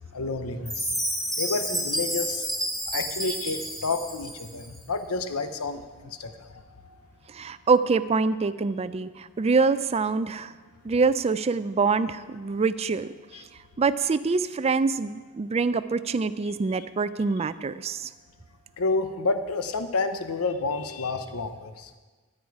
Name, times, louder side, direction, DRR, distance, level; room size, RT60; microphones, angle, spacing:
voice 1, 0.1-1.0 1.4-2.5 2.9-6.6 13.3-13.5 16.8-16.9 18.8-21.9, left 3 dB, 85° left, 9 dB, 0.8 m, -30 dB
Chime, 0.7-4.7, right 1 dB, ahead, 1.6 m, -30 dB
voice 2, 7.3-10.5 10.8-13.1 13.8-18.1, right 4 dB, 30° right, 13 dB, 0.4 m, -25 dB
14.0 x 8.8 x 4.8 m, 1.3 s
head